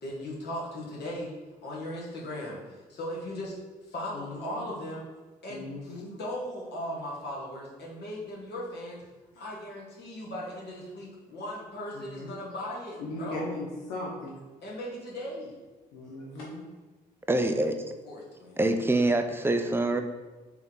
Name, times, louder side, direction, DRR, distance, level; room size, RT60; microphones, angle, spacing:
voice 1, 0.0-1.3 1.6-3.5 3.8-5.1 5.4-9.0 9.4-13.5 14.6-15.5 18.0-18.6, left 1 dB, 55° left, -5 dB, 1.3 m, -38 dB
voice 2, 4.1-4.8 5.5-6.2 9.3-9.4 11.9-12.4 13.0-14.4 15.9-16.7, left 2 dB, 75° left, -3 dB, 0.7 m, -38 dB
voice 3, 17.3-17.8 18.6-20.0, right 2 dB, 10° right, 7 dB, 0.4 m, -25 dB
3.5 x 3.0 x 3.7 m, 1.2 s
hypercardioid pair, 50°, 21 cm